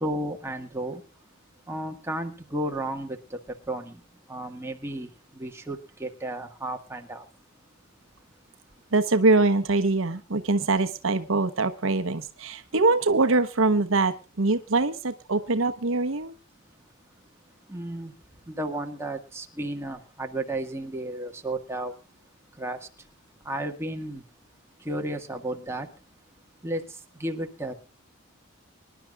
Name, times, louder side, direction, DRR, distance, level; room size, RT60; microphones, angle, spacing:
voice 1, 0.0-1.0 1.7-3.4 3.7-4.0 4.3-5.1 5.3-7.2 17.7-18.1 18.5-21.9 22.6-22.8 23.4-24.2 24.8-25.9 26.6-26.8 27.2-27.7, right 1 dB, 10° right, 1.7 m, -33 dB
voice 2, 8.9-16.3, right 3 dB, 65° right, 1.0 m, -23 dB
25.5 x 11.5 x 2.4 m
head